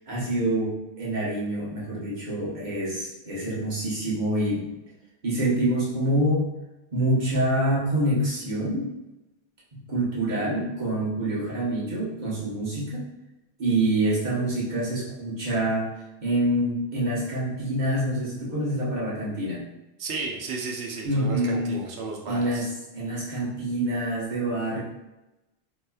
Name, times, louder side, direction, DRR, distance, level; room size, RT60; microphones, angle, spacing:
voice 1, 0.1-4.7 5.2-6.5 6.9-8.9 9.7-13.1 13.6-15.9 16.2-19.6 21.0-21.8 22.2-24.8, right 1 dB, 45° right, -7 dB, 1.2 m, -26 dB
voice 2, 20.0-22.7, right 3 dB, 75° right, 1 dB, 0.9 m, -33 dB
3.9 x 3.0 x 2.3 m, 1.0 s
omnidirectional pair, 1.1 m